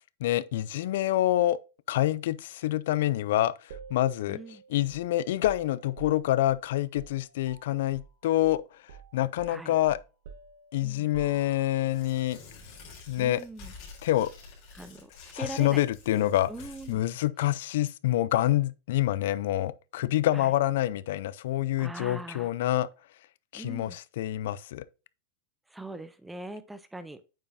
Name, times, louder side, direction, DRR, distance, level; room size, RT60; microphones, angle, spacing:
voice 1, 0.2-1.6 1.9-3.5 3.9-4.4 4.7-8.6 9.1-10.0 10.7-12.4 13.1-13.4 14.0-14.3 15.3-16.5 16.9-22.9 23.5-24.8, left 14 dB, 65° left, 0.4 m, -26 dB
sound 1, 3.7-8.1 8.4-8.6 8.9-11.9, right 6 dB, 70° right, 1.2 m, -49 dB
voice 2, 4.3-4.6 9.5-9.8 10.8-11.1 13.2-13.7 14.7-15.8 16.1-17.0 20.3-20.5 21.8-22.5 23.5-24.0 25.7-27.2, right 1 dB, 5° right, 0.4 m, -41 dB
Tearing, 11.8-17.0, left 4 dB, 45° left, 3.5 m, -49 dB
8.7 x 5.4 x 2.7 m
supercardioid pair, 155°, 0 cm